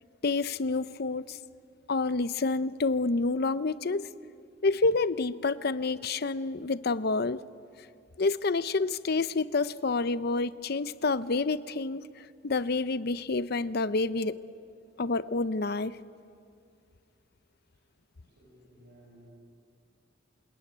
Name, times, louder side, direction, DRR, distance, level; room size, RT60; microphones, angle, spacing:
voice 1, 0.2-1.4 1.9-4.1 4.6-7.4 8.2-14.4 15.0-15.9, left 3 dB, 60° left, 14 dB, 0.7 m, -28 dB
voice 2, 18.2-19.3, equal, 65° right, -1 dB, 7.0 m, -57 dB
27.0 x 20.0 x 9.2 m, 2.4 s
head